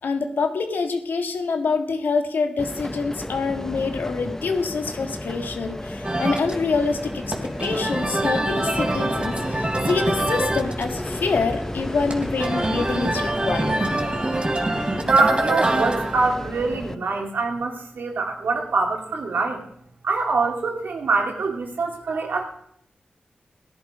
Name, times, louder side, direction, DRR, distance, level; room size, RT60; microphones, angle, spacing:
voice 1, 0.0-13.8, left 4 dB, 85° left, 6 dB, 1.7 m, -26 dB
sound 1, 2.6-16.9, left 1 dB, 15° left, 0.7 m, -32 dB
sound 2, 6.0-16.3, right 2 dB, 35° right, 3.1 m, -26 dB
voice 2, 15.0-19.7 20.0-22.5, right 3 dB, 80° right, 2 dB, 2.6 m, -24 dB
16.5 x 11.0 x 5.0 m, 0.71 s
cardioid pair, 45°, 3 cm